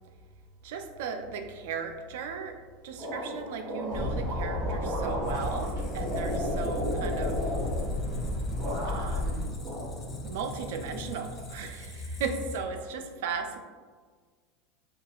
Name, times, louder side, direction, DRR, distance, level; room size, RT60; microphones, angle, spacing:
voice 1, 0.6-2.6 2.8-7.5 8.8-9.6 10.2-13.6, right 5 dB, 75° right, 6 dB, 0.3 m, -36 dB
sound 1, 3.0-8.3 8.6-9.3 9.6-10.5, equal, 35° right, 0.7 m, -34 dB
sound 2, 3.9-9.5, left 1 dB, 80° left, 1.0 m, -33 dB
Squeak, 5.0-12.9, left 2 dB, 35° left, 0.4 m, -41 dB
2.8 x 2.3 x 2.3 m, 1.5 s
supercardioid pair, 125°, 0 cm